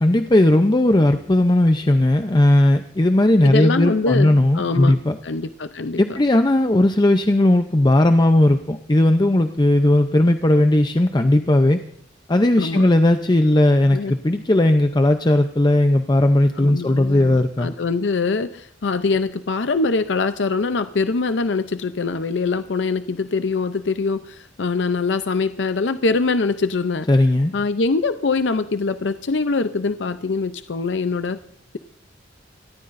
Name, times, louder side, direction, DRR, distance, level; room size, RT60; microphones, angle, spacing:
voice 1, 0.0-5.2 6.0-11.8 12.3-17.7 27.1-27.5, left 1 dB, 25° left, 7 dB, 0.6 m, -17 dB
voice 2, 3.4-5.0 5.2-6.0 12.6-12.9 13.9-14.1 16.6-27.1 27.5-31.4, left 4 dB, 70° left, 11 dB, 0.6 m, -23 dB
28.5 x 13.5 x 2.6 m, 0.64 s
head